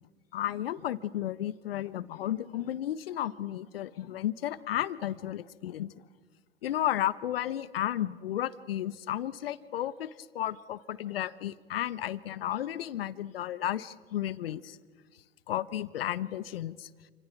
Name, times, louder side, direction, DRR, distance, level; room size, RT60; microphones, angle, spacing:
voice 1, 0.3-5.9 6.6-10.1 10.3-14.8 15.5-16.9, left 12 dB, 70° left, 17 dB, 1.1 m, -33 dB
28.0 x 27.0 x 6.0 m, 1.4 s
figure-of-eight pair, 90°, 31 cm